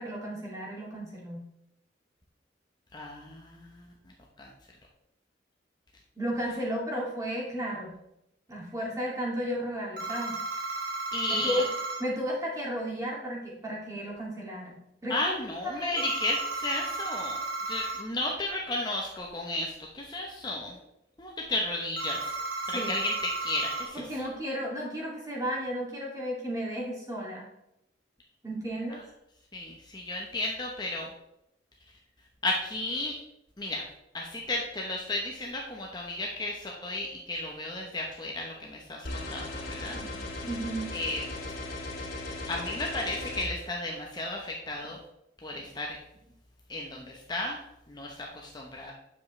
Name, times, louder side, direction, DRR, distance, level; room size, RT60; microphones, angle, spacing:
voice 1, 0.0-1.4 6.2-7.9 8.5-10.4 11.3-11.7 12.0-15.3 15.6-16.0 22.7-23.0 23.9-27.4 28.4-29.0 39.9-40.9 45.5-45.6, equal, 20° right, -3 dB, 2.4 m, -34 dB
voice 2, 2.9-3.9 4.4-4.5 11.1-11.6 15.1-17.4 17.7-20.8 21.2-22.3 22.7-24.1 29.5-31.1 32.4-33.2 33.6-33.9 34.1-40.0 40.9-41.2 42.5-45.0 45.4-46.0 46.7-47.6 47.9-48.9, left 2 dB, 20° left, -1 dB, 0.9 m, -33 dB
sound 1, 10.0-12.0 16.0-18.0 22.0-23.9, right 2 dB, 60° right, 1.5 m, -34 dB
sound 2, 39.0-43.4, left 2 dB, 50° left, 2.9 m, -37 dB
9.2 x 7.3 x 3.2 m, 0.84 s
head